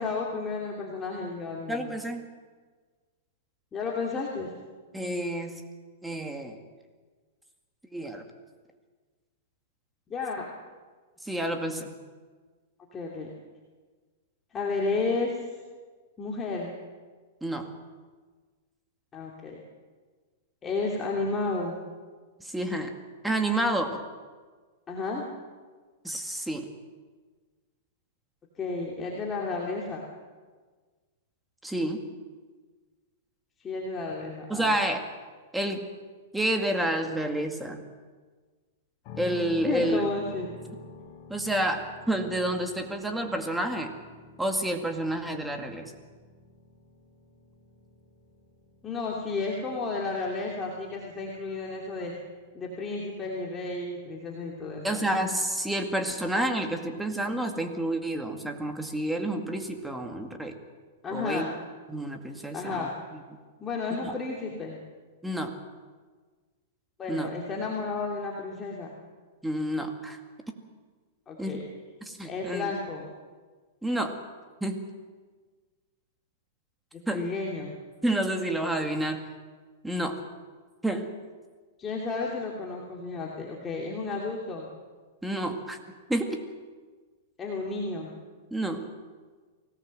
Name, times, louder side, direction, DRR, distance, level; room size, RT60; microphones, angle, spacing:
voice 1, 0.0-1.9 3.7-4.5 10.1-10.4 12.9-13.3 14.5-15.4 16.2-16.7 19.1-19.6 20.6-21.8 24.9-25.2 28.6-30.0 33.6-34.7 39.6-40.5 48.8-52.1 52.5-54.8 61.0-61.5 62.5-62.9 63.6-64.8 67.0-68.9 71.3-71.6 72.2-73.1 77.1-77.7 81.8-84.7 87.4-88.1, left 3 dB, 20° left, -2 dB, 2.7 m, -32 dB
voice 2, 1.7-2.2 4.9-5.6 6.0-6.6 7.9-8.2 11.2-11.9 17.4-17.7 22.4-22.9 23.2-24.0 26.0-26.7 31.6-32.1 34.5-35.0 35.5-35.9 36.3-37.8 39.2-40.0 41.3-43.9 44.4-45.9 54.8-60.6 61.1-61.4 61.9-63.2 64.0-64.1 65.2-65.5 67.1-67.3 69.4-70.2 71.4-71.6 72.0-72.8 73.8-74.2 74.6-74.9 77.1-77.3 78.0-79.2 79.8-80.2 80.8-81.1 85.2-85.8 86.1-86.4 88.5-88.9, right 1 dB, 5° right, 4 dB, 2.1 m, -29 dB
sound 1, 39.0-54.9, left 3 dB, 40° left, 5.1 m, -49 dB
24.0 x 17.5 x 7.7 m, 1.4 s
hypercardioid pair, 145°, 0 cm